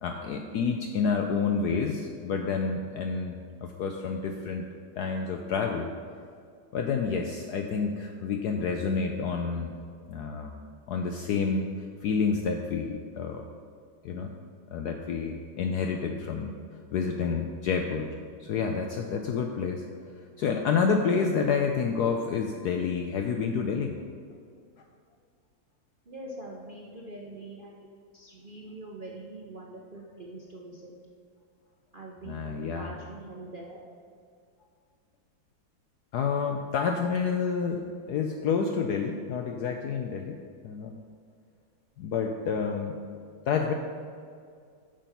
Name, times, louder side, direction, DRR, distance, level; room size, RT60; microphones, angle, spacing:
voice 1, 0.0-4.7 4.9-5.9 6.7-9.7 10.1-10.6 10.9-11.7 12.0-13.5 14.0-14.3 14.7-16.5 16.9-19.8 20.4-24.0 32.2-32.9 36.1-40.4 40.6-41.0 42.0-43.0 43.5-43.7, left 5 dB, 70° left, 4 dB, 1.0 m, -29 dB
voice 2, 26.1-27.9 28.1-30.9 31.9-33.8, right 2 dB, 50° right, -3 dB, 0.6 m, -43 dB
8.5 x 6.1 x 5.8 m, 2.2 s
omnidirectional pair, 2.1 m